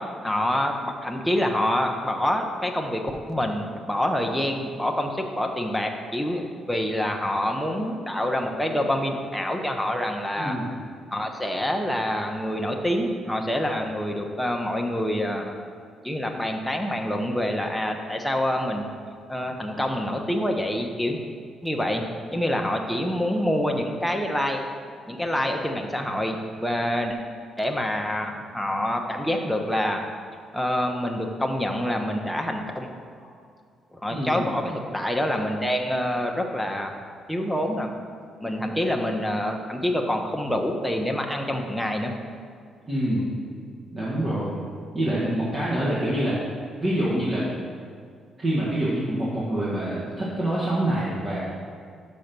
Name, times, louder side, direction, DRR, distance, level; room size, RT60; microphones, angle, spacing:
voice 1, 0.0-3.0 3.3-10.6 11.1-15.5 16.0-18.9 19.3-21.2 21.6-22.0 22.3-24.6 25.1-27.2 27.6-30.0 30.5-32.9 33.9-36.9 37.3-37.9 38.4-42.1, left 1 dB, ahead, 2 dB, 0.8 m, -26 dB
voice 2, 10.4-10.7 34.1-34.5 42.9-43.3 43.9-44.5 44.9-46.4 46.8-47.5 48.4-51.4, right 1 dB, 30° right, -8 dB, 1.7 m, -26 dB
6.2 x 5.3 x 6.0 m, 2.1 s
cardioid pair, 90°, 0 cm